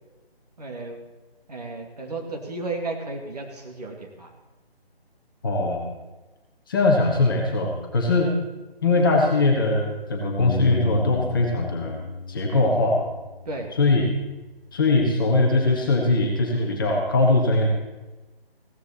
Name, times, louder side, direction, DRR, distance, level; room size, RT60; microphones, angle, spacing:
voice 1, 0.6-1.0 1.5-4.3 13.4-13.7, right 2 dB, 40° right, 1 dB, 2.5 m, -33 dB
voice 2, 5.4-5.9 6.7-8.3 8.8-12.0 12.3-13.0 13.8-14.0 14.7-17.7, left 2 dB, 20° left, -1 dB, 1.7 m, -21 dB
Bass guitar, 10.4-16.6, left 3 dB, 45° left, 2.1 m, -35 dB
16.0 x 14.0 x 4.3 m, 1.1 s
figure-of-eight pair, 165°, 31 cm